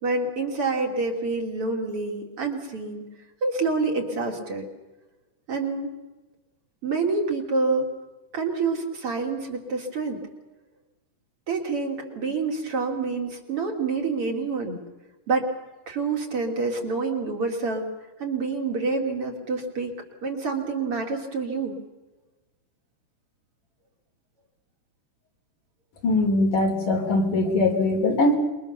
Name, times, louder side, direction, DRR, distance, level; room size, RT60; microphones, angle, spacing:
voice 1, 0.0-3.0 3.4-4.7 5.5-5.9 6.8-7.9 8.3-10.2 11.5-14.8 15.3-15.5 15.9-17.9 18.2-19.9 20.2-21.8, right 4 dB, 45° right, 2 dB, 3.8 m, -27 dB
voice 2, 26.0-28.3, left 2 dB, 85° left, 2 dB, 5.3 m, -21 dB
27.5 x 23.0 x 6.9 m, 1.2 s
omnidirectional pair, 3.7 m